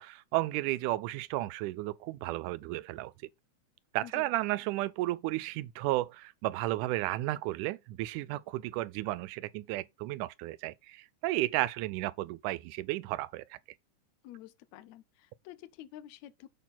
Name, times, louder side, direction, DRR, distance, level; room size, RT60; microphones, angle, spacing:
voice 1, 0.0-3.1 3.9-13.6, right 17 dB, 85° right, 2.1 m, -33 dB
voice 2, 14.2-16.5, left 13 dB, 75° left, 1.9 m, -49 dB
6.7 x 6.0 x 4.2 m
omnidirectional pair, 3.6 m